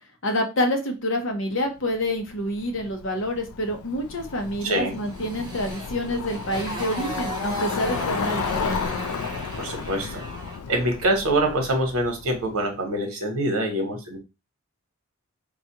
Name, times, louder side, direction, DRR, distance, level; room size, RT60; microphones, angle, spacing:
voice 1, 0.2-8.8, left 1 dB, 60° left, 4 dB, 0.8 m, -27 dB
Bicycle, 1.8-12.7, left 5 dB, 80° left, 0.4 m, -33 dB
Motorcycle, 4.6-10.7, right 1 dB, 20° right, 0.7 m, -36 dB
voice 2, 4.6-4.9 9.6-10.2 10.7-14.2, right 1 dB, 85° right, 4 dB, 1.0 m, -25 dB
3.9 x 2.3 x 2.9 m, 0.27 s
head